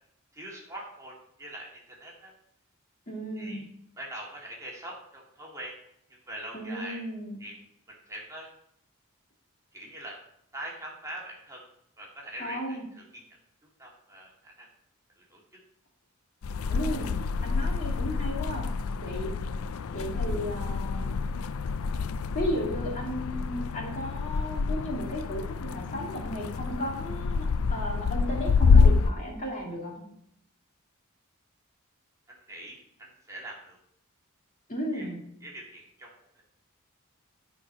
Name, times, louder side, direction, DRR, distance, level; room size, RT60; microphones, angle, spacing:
voice 1, 0.3-2.3 3.4-3.6 4.0-5.8 6.1-7.0 7.4-7.6 7.9-8.5 9.7-10.2 10.5-11.7 12.0-13.2 13.8-14.7 15.2-15.4 32.3-33.8 34.9-35.1 35.4-36.4, right 1 dB, 15° right, -3 dB, 2.2 m, -43 dB
voice 2, 3.1-3.7 6.5-7.4 12.4-12.9 16.7-19.3 19.9-21.2 22.3-30.0 34.7-35.2, equal, 40° left, -2 dB, 2.4 m, -34 dB
sound 1, 16.4-29.1, left 5 dB, 85° left, 0.4 m, -27 dB
12.0 x 4.7 x 5.6 m, 0.73 s
head